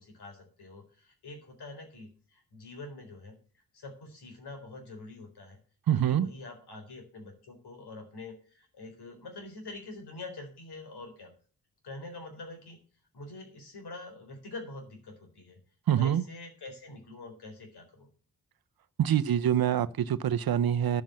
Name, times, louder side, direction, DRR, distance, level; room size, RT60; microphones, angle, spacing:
voice 1, 0.0-3.4 3.7-5.6 5.9-11.3 11.8-12.8 13.1-15.6 15.9-18.1, left 2 dB, 80° left, 4.1 m, -45 dB
voice 2, 5.9-6.3 15.9-16.2 19.0-21.0, right 10 dB, 65° right, 0.7 m, -25 dB
10.5 x 7.5 x 7.5 m
cardioid pair, 80°, 38 cm